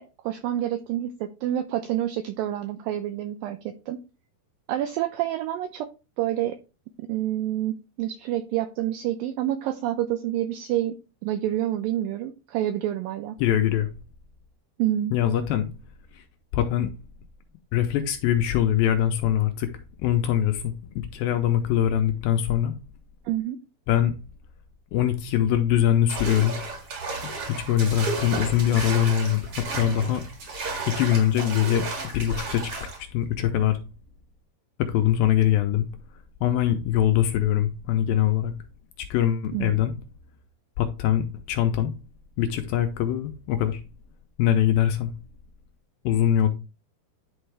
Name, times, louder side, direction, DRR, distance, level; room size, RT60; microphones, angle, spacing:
voice 1, 0.0-4.0 4.7-5.9 6.2-6.6 7.0-11.0 11.2-13.4 14.8-15.1 23.3-23.6 39.5-39.7, right 12 dB, 85° right, 2.0 m, -28 dB
voice 2, 13.4-13.9 15.1-15.7 16.1-16.2 16.5-16.9 17.7-19.7 20.0-22.7 23.9-24.1 24.9-26.6 27.2-30.2 31.0-31.9 32.1-32.7 33.1-33.8 34.8-35.9 36.4-38.5 39.0-39.9 40.8-41.9 42.4-43.8 44.4-45.1 46.0-46.5, left 11 dB, 80° left, 2.2 m, -23 dB
sound 1, 26.1-33.0, right 3 dB, 45° right, 2.3 m, -33 dB
10.5 x 4.4 x 3.3 m
omnidirectional pair, 4.7 m